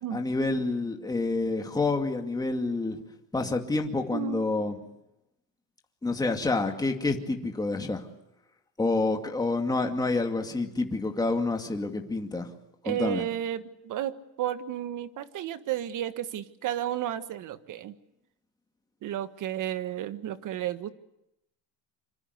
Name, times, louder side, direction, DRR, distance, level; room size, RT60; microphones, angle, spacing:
voice 1, 0.1-3.0 3.3-4.8 6.0-8.1 8.8-12.5 12.9-13.2, left 3 dB, 10° left, 3 dB, 2.4 m, -28 dB
voice 2, 4.1-4.5 12.8-17.9 19.0-20.9, right 11 dB, 45° right, 12 dB, 1.6 m, -32 dB
26.0 x 26.0 x 8.2 m, 0.82 s
cardioid pair, 155°, 44 cm